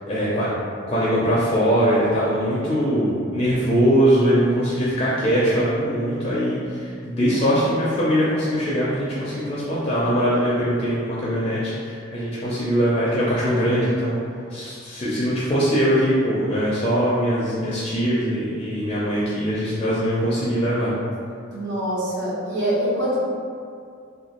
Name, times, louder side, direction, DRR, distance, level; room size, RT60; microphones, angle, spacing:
voice 1, 0.1-0.5 0.9-14.1 14.5-20.9, equal, 30° left, -8 dB, 0.4 m, -21 dB
voice 2, 21.5-23.2, right 1 dB, 65° right, -8 dB, 0.9 m, -25 dB
2.8 x 2.3 x 2.9 m, 2.3 s
head